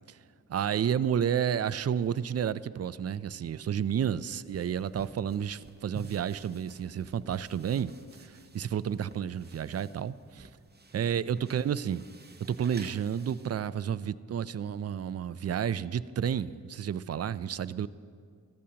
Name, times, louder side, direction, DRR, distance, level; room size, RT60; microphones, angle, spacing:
voice 1, 0.5-10.5 10.9-12.0 12.4-17.9, right 8 dB, 45° right, 0.4 m, -31 dB
sound 1, 4.4-13.7, right 3 dB, 25° right, 0.8 m, -52 dB
15.0 x 13.5 x 2.9 m
cardioid pair, 50°, 37 cm